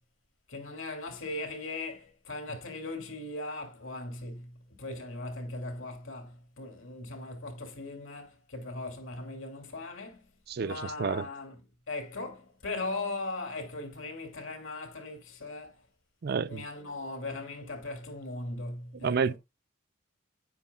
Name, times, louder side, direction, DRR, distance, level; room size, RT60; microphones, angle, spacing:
voice 1, 0.5-10.3 10.6-11.6 11.9-15.8 16.5-19.2, left 2 dB, 70° left, 2.8 m, -39 dB
voice 2, 10.5-11.3 16.2-16.6 19.0-19.4, right 5 dB, 50° right, 0.4 m, -29 dB
9.7 x 9.3 x 2.3 m
head